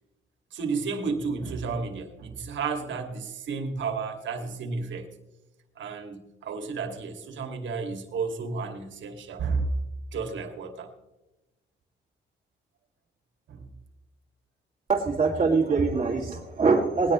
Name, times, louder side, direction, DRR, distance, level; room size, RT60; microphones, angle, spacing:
voice 1, 0.5-5.1 5.8-9.7 10.1-10.9 13.5-13.7, right 4 dB, 70° right, 5 dB, 2.4 m, -32 dB
voice 2, 14.9-17.1, right 4 dB, 30° right, -3 dB, 2.5 m, -23 dB
19.5 x 18.0 x 3.2 m, 1.0 s
cardioid pair, 90°, 20 cm